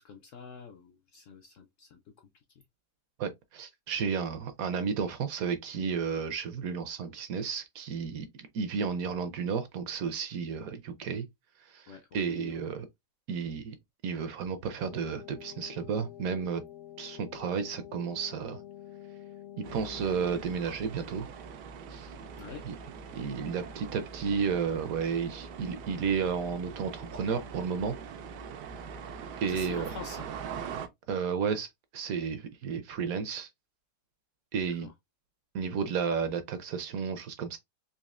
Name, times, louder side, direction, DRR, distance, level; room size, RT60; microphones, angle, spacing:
voice 1, 0.0-2.0 11.9-12.6 22.4-22.6 29.5-30.3 34.7-34.9, left 5 dB, 70° left, 0.7 m, -46 dB
voice 2, 3.2-11.3 11.7-12.9 13.3-13.7 14.0-16.6 17.0-18.6 19.6-21.3 21.9-22.1 22.6-22.7 23.1-28.0 29.4-29.9 31.1-31.7 31.9-33.5 34.5-34.9 35.5-37.6, right 6 dB, 70° right, 0.9 m, -32 dB
sound 1, 14.8-20.4, left 12 dB, 90° left, 1.3 m, -47 dB
sound 2, 19.6-30.9, right 6 dB, 90° right, 1.2 m, -43 dB
4.1 x 2.8 x 2.4 m
omnidirectional pair, 1.7 m